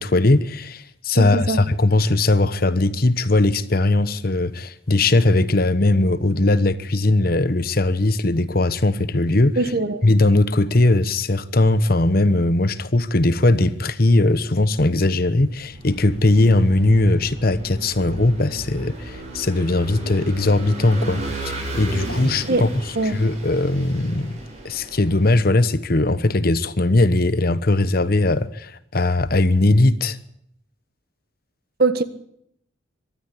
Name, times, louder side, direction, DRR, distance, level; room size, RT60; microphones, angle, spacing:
voice 1, 0.0-9.6 10.0-21.2 21.7-22.7 23.0-24.4 24.6-30.2, left 2 dB, 50° left, 1.1 m, -19 dB
voice 2, 1.1-1.6 9.6-10.0 22.5-22.7 22.9-23.1 31.8-32.0, right 2 dB, 50° right, 1.5 m, -21 dB
Vehicle / Engine, 15.6-25.4, right 1 dB, 35° right, 7.3 m, -34 dB
24.0 x 12.5 x 8.6 m
head